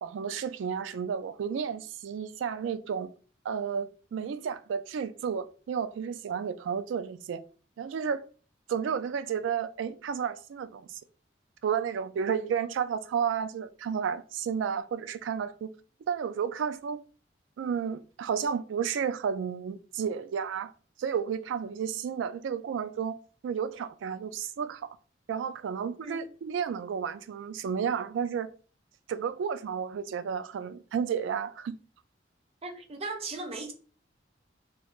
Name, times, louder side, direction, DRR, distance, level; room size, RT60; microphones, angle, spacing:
voice 1, 0.0-3.1 3.4-7.4 7.8-8.2 8.7-11.0 11.6-15.7 16.1-17.0 17.6-20.7 21.0-23.2 23.4-25.0 25.3-28.5 29.1-31.8, right 7 dB, 90° right, 0.3 m, -32 dB
voice 2, 26.0-26.3 32.6-33.7, right 3 dB, 35° right, 0.5 m, -37 dB
3.2 x 2.4 x 3.0 m
head